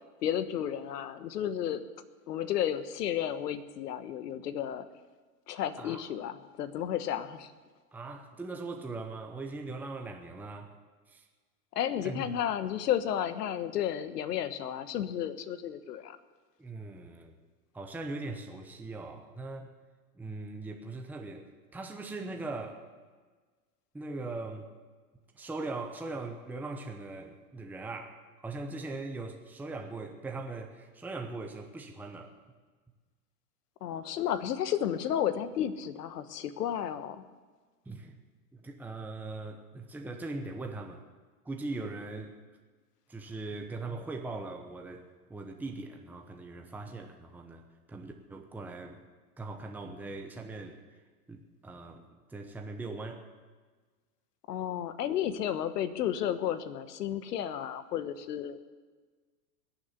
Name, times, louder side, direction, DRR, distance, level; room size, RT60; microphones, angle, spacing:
voice 1, 0.2-1.8 2.3-4.9 5.5-7.5 11.7-16.2 33.8-37.2 54.5-58.6, left 10 dB, 85° left, 12 dB, 1.3 m, -32 dB
voice 2, 7.9-10.7 11.1-11.3 12.0-12.4 16.6-17.4 17.7-19.7 20.2-22.8 23.9-24.7 25.3-32.3 37.9-38.2 38.6-41.0 41.4-42.4 43.1-47.6 47.9-49.0 49.4-50.8 51.3-53.2, right 3 dB, 5° right, 3 dB, 1.0 m, -40 dB
21.0 x 7.3 x 8.2 m, 1.4 s
supercardioid pair, 135°, 46 cm